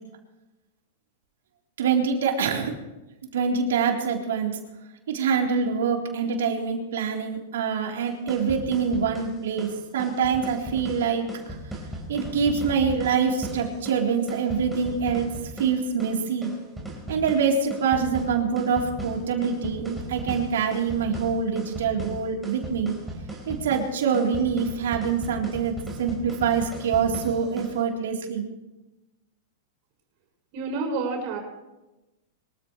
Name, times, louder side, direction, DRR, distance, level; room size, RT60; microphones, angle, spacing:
voice 1, 1.8-2.8 3.3-4.6 5.1-11.3 12.1-15.3 15.6-16.5 17.1-23.0 23.5-28.4, right 6 dB, 85° right, 0 dB, 3.7 m, -25 dB
sound 1, 8.1-27.8, right 1 dB, 5° right, 4.5 m, -37 dB
voice 2, 30.5-31.4, right 3 dB, 50° right, 1 dB, 6.2 m, -28 dB
24.5 x 14.5 x 3.3 m, 1.0 s
supercardioid pair, 150°, 0 cm